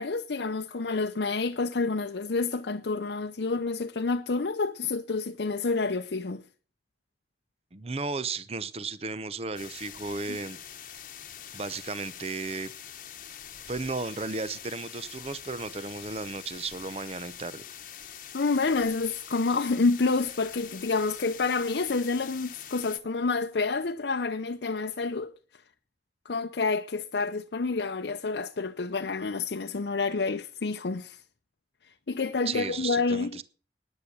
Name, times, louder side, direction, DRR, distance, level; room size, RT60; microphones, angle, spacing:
voice 1, 0.0-6.4 10.3-10.4 18.3-25.3 26.3-31.2 32.1-33.3, left 4 dB, 75° left, 0.6 m, -28 dB
voice 2, 7.7-10.6 11.5-12.7 13.7-17.6 32.5-33.4, right 4 dB, 35° right, 0.7 m, -34 dB
sound 1, 9.5-23.0, left 9 dB, 45° left, 1.1 m, -45 dB
9.9 x 9.6 x 8.0 m
head